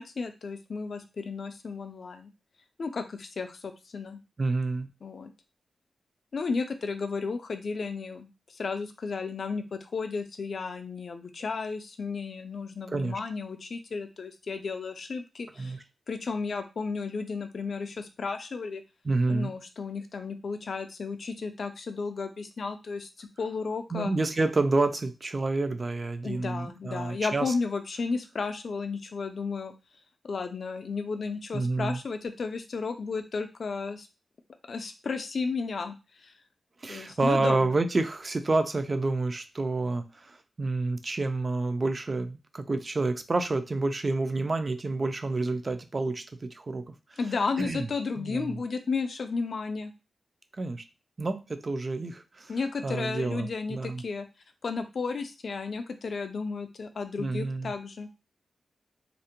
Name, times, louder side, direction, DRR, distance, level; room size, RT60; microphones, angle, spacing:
voice 1, 0.0-2.3 2.8-4.2 5.0-5.3 6.3-15.8 16.1-18.8 19.3-24.1 26.2-29.7 30.2-34.1 34.7-36.0 36.2-36.3 36.9-37.8 47.2-49.9 52.5-54.3 54.6-58.1, left 4 dB, 60° left, 7 dB, 0.3 m, -33 dB
voice 2, 4.4-4.9 12.9-13.2 15.6-15.8 19.0-19.5 23.9-27.5 31.5-32.0 36.8-46.8 47.6-47.9 48.2-48.6 50.6-50.8 51.2-52.5 52.8-54.0 57.2-57.7, right 3 dB, 35° right, 8 dB, 0.3 m, -29 dB
2.4 x 2.1 x 2.8 m, 0.29 s
wide cardioid pair, 115°, 0 cm